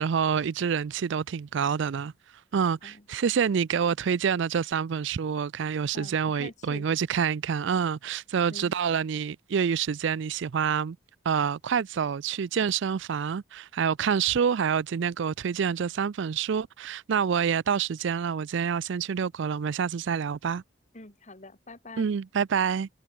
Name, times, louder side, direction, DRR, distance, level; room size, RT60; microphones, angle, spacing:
voice 1, 0.0-2.1 2.5-11.0 11.2-20.6 22.0-22.9, right 7 dB, 65° right, 0.4 m, -27 dB
voice 2, 5.9-6.9 8.5-8.7 20.9-22.1, left 2 dB, 40° left, 4.4 m, -45 dB
head